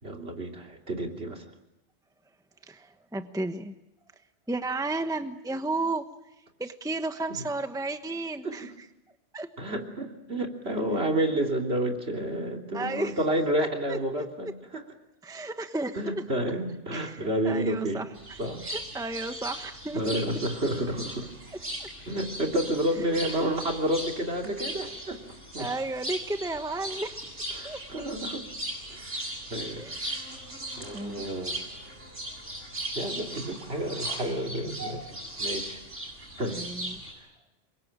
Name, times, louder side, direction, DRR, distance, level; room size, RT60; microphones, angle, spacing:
voice 1, 0.0-1.4 8.4-8.7 9.6-14.8 15.9-18.0 18.4-18.6 19.9-21.3 22.1-25.2 25.5-25.7 27.5-28.5 28.9-29.1 29.5-29.9 30.8-31.6 32.9-35.8 36.4-36.6, right 1 dB, 60° right, 2 dB, 3.5 m, -30 dB
voice 2, 2.7-3.7 4.5-6.1 6.6-8.7 9.3-9.5 12.7-13.2 13.6-14.0 15.2-16.2 16.9-18.1 18.6-20.0 21.8-21.9 23.0-23.1 23.4-23.5 25.6-27.2 27.6-27.8 29.8-30.1 30.9-31.2 36.5-37.0, right 2 dB, 5° right, 8 dB, 1.1 m, -33 dB
sound 1, 18.1-37.1, right 1 dB, 85° right, 8.5 m, -38 dB
27.5 x 23.5 x 8.9 m, 0.91 s
omnidirectional pair, 1.2 m